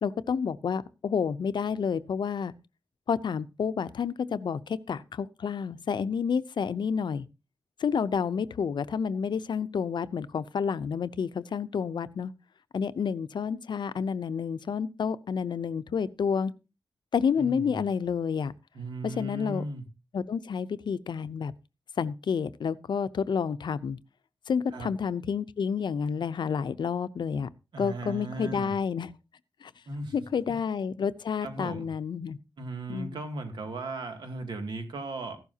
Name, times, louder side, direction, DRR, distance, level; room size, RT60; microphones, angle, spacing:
voice 1, 0.0-2.5 3.1-7.3 7.8-12.3 12.7-16.5 17.1-18.5 19.0-19.6 20.1-21.5 22.0-24.0 24.5-27.5 27.8-29.1 29.6-29.7 30.1-32.4 32.9-33.2, left 6 dB, 75° left, 0.6 m, -29 dB
voice 2, 17.4-17.8 18.7-19.8 24.7-24.9 27.7-28.7 29.9-30.2 31.4-31.9 32.6-35.4, right 2 dB, 80° right, 2.5 m, -36 dB
15.0 x 12.0 x 2.8 m
wide cardioid pair, 170°, 8 cm